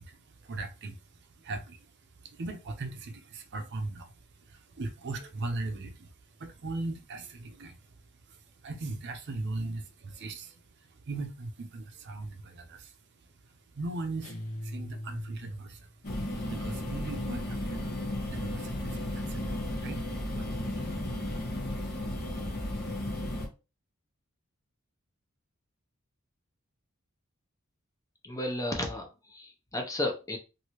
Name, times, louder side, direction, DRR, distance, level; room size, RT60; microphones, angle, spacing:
voice 1, 0.0-21.3 21.9-22.9, right 2 dB, 50° right, 0.6 m, -40 dB
sound 1, 14.2-15.9, equal, 85° left, 0.8 m, -40 dB
sound 2, 16.0-23.5, left 1 dB, 50° left, 1.0 m, -34 dB
voice 2, 28.2-30.4, left 1 dB, 15° left, 0.7 m, -33 dB
3.1 x 2.6 x 2.9 m
head